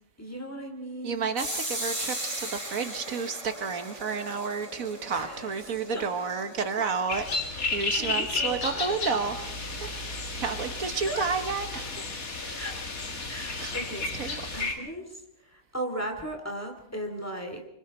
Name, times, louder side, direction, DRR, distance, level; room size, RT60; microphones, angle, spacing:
voice 1, 0.2-1.3 5.1-6.1 8.0-9.0 10.7-10.8 11.1-11.3 12.5-12.8 13.3-17.6, right 1 dB, 10° left, 3 dB, 2.9 m, -37 dB
voice 2, 1.0-9.5 10.3-11.8 12.4-12.6 13.2-13.3 13.6-13.7 14.2-14.4, right 5 dB, 80° right, 8 dB, 1.7 m, -31 dB
sound 1, 1.4-7.0, right 1 dB, 20° right, 4.2 m, -37 dB
sound 2, 7.1-14.7, left 3 dB, 85° left, 2.5 m, -33 dB
sound 3, 7.5-12.5, left 1 dB, 35° left, 3.0 m, -53 dB
26.5 x 23.5 x 4.4 m, 0.85 s
omnidirectional pair, 1.4 m